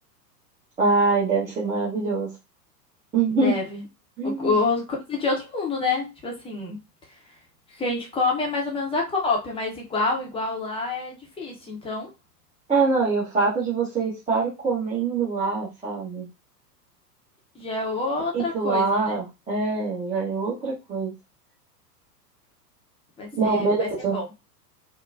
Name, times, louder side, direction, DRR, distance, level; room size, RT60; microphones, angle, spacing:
voice 1, 0.8-2.3 3.1-3.5 4.2-4.5 12.7-16.3 18.3-21.1 23.4-24.2, right 4 dB, 15° right, -8 dB, 1.0 m, -24 dB
voice 2, 3.3-3.8 4.2-6.8 7.7-12.1 17.5-19.2 23.2-24.2, left 3 dB, 10° left, -1 dB, 0.9 m, -27 dB
3.8 x 2.2 x 2.5 m, 0.25 s
figure-of-eight pair, 95°, 49 cm